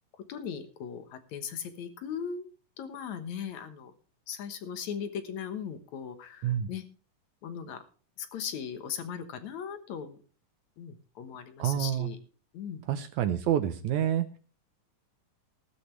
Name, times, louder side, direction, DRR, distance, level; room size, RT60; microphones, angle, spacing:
voice 1, 0.3-2.5 2.8-3.9 4.3-6.8 7.4-7.8 8.2-10.2 10.8-12.2 12.5-12.8, left 7 dB, 65° left, 9 dB, 2.3 m, -38 dB
voice 2, 11.6-12.1 12.9-14.3, right 10 dB, 75° right, 10 dB, 2.0 m, -28 dB
15.5 x 12.5 x 3.2 m, 0.37 s
omnidirectional pair, 3.8 m